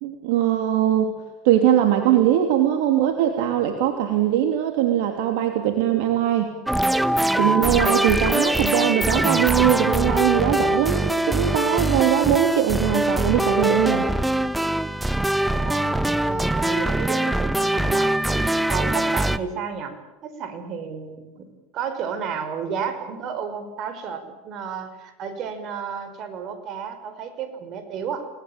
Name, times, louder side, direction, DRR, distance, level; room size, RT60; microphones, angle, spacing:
voice 1, 0.0-1.2 1.4-6.5 7.4-14.1, right 11 dB, 70° right, 5 dB, 2.9 m, -21 dB
sound 1, 6.7-19.4, right 1 dB, 5° right, 1.3 m, -22 dB
voice 2, 15.4-19.9 20.2-28.3, right 6 dB, 50° right, 9 dB, 5.5 m, -32 dB
29.5 x 19.5 x 8.9 m, 1.0 s
hypercardioid pair, 95°, 0 cm